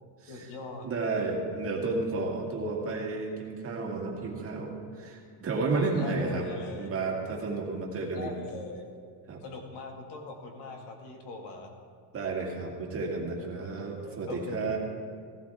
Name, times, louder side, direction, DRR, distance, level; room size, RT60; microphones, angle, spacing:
voice 1, 0.3-0.9 5.7-6.9 8.1-8.9 9.4-11.7 13.4-14.8, left 2 dB, 65° left, 2 dB, 2.0 m, -40 dB
voice 2, 0.8-6.5 6.8-8.3 9.3-9.4 12.1-14.8, right 3 dB, 30° right, -1 dB, 1.9 m, -32 dB
16.5 x 12.5 x 3.6 m, 2.1 s
cardioid pair, 165°, 45 cm